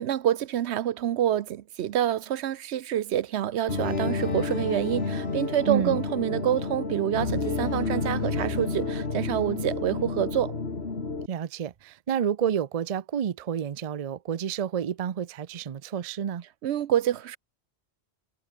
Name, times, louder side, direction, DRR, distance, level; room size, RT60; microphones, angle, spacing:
voice 1, 0.0-10.6 16.6-17.4, right 11 dB, 75° right, 0.9 m, -27 dB
sound 1, 3.7-11.3, left 4 dB, 65° left, 2.5 m, -30 dB
voice 2, 5.7-6.0 11.3-16.4, right 8 dB, 45° right, 0.5 m, -29 dB
omnidirectional pair, 1.2 m